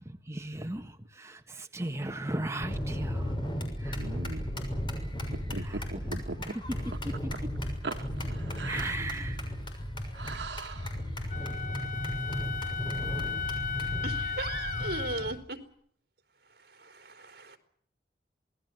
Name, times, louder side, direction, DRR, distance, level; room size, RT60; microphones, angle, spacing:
voice 1, 0.0-3.5 3.8-4.0 5.6-6.1 6.4-7.5 8.6-9.4, right 1 dB, 15° right, 5 dB, 1.5 m, -37 dB
sound 1, 2.6-15.3, equal, 30° left, 6.6 m, -35 dB
voice 2, 4.0-4.5 5.3-6.4 7.8-8.9 10.1-11.0, right 3 dB, 85° right, 7 dB, 1.3 m, -39 dB
Wind instrument woodwind instrument, 11.3-15.4, left 6 dB, 45° left, 1.8 m, -36 dB
voice 3, 14.0-15.6 16.4-17.6, right 2 dB, 60° right, 8 dB, 4.0 m, -38 dB
26.5 x 19.5 x 7.8 m, 0.64 s
head